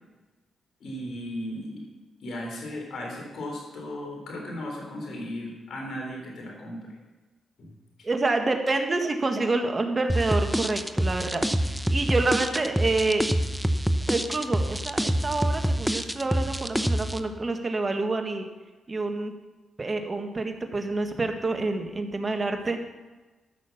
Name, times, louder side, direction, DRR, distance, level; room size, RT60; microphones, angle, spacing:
voice 1, 0.8-1.8 2.2-6.8 7.6-7.7, left 1 dB, 70° left, 0 dB, 3.8 m, -36 dB
voice 2, 8.0-13.3 14.1-18.5 18.9-19.3 19.8-22.8, right 3 dB, 35° right, 5 dB, 1.8 m, -27 dB
sound 1, 10.1-17.2, equal, ahead, 0.8 m, -26 dB
13.5 x 6.5 x 7.2 m, 1.2 s
cardioid pair, 65°, 0 cm